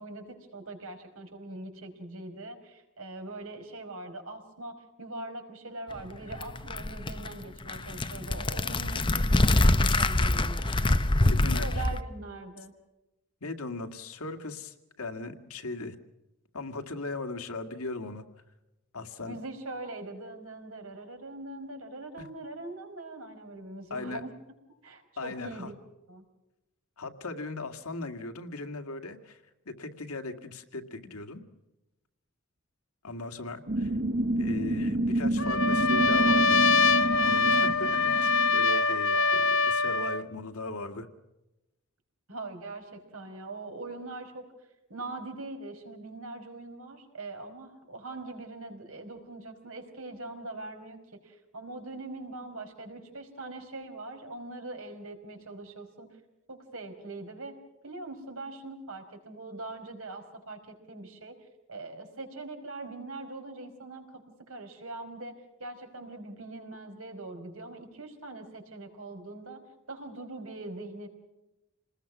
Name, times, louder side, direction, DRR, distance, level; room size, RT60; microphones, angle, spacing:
voice 1, 0.0-10.9 11.6-12.7 19.2-24.3 24.7-25.7 26.1-26.2 42.3-44.4 44.9-56.1 56.5-57.6 57.8-61.4 61.7-65.3 65.6-71.1, right 2 dB, 70° right, 5 dB, 5.1 m, -42 dB
sound 1, 6.0-12.0, left 2 dB, 20° left, 0.8 m, -25 dB
voice 2, 11.3-11.8 13.4-16.0 16.5-18.2 18.9-19.4 23.9-24.2 25.2-25.7 27.0-31.4 33.0-33.9 34.4-36.6 37.2-41.1, left 3 dB, 80° left, 6 dB, 2.1 m, -38 dB
sound 2, 33.7-38.7, right 1 dB, 50° right, 1.2 m, -29 dB
Trumpet, 35.4-40.2, left 3 dB, 60° left, 1.1 m, -24 dB
28.0 x 20.0 x 6.1 m, 0.98 s
head